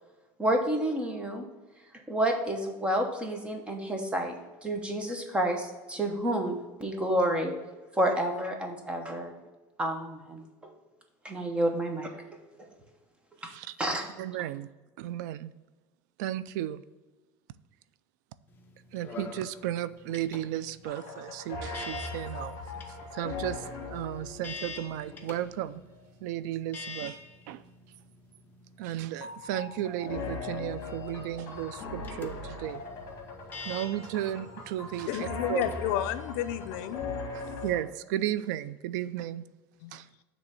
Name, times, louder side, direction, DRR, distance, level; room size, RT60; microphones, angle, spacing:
voice 1, 0.4-1.4 2.1-4.3 4.6-7.5 7.9-9.3 9.8-10.4 11.2-12.2 12.6-12.7 13.4-13.5 13.8-14.1 14.4-14.5, right 1 dB, 10° right, 0.9 m, -29 dB
voice 2, 14.2-14.7 15.0-15.5 16.2-16.8 18.9-22.6 23.1-25.8 26.2-27.2 27.5-27.6 28.8-32.8 33.6-35.6 37.3-39.4 39.9-40.1, right 12 dB, 90° right, 0.4 m, -34 dB
sound 1, 18.5-37.0, left 4 dB, 20° left, 0.7 m, -47 dB
sound 2, 20.8-25.8 29.2-37.8, left 3 dB, 45° left, 1.8 m, -40 dB
voice 3, 35.1-37.0 39.8-40.0, left 11 dB, 75° left, 0.5 m, -31 dB
7.7 x 3.2 x 6.3 m
cardioid pair, 160°, 9 cm